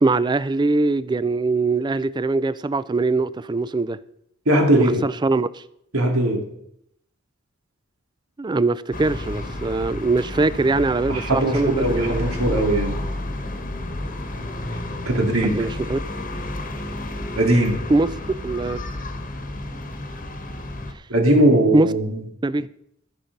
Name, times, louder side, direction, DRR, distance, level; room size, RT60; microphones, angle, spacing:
voice 1, 0.0-4.0 4.7-5.6 8.4-12.3 15.4-16.0 17.9-18.1 18.4-18.8 21.7-21.9 22.4-22.7, right 3 dB, 20° right, 0.3 m, -22 dB
voice 2, 4.5-4.9 5.9-6.4 11.1-12.9 15.1-15.5 17.4-17.8 21.1-22.2, right 1 dB, 85° right, 2.5 m, -19 dB
sound 1, 8.9-20.9, left 1 dB, 40° left, 1.2 m, -31 dB
14.0 x 5.9 x 5.3 m
head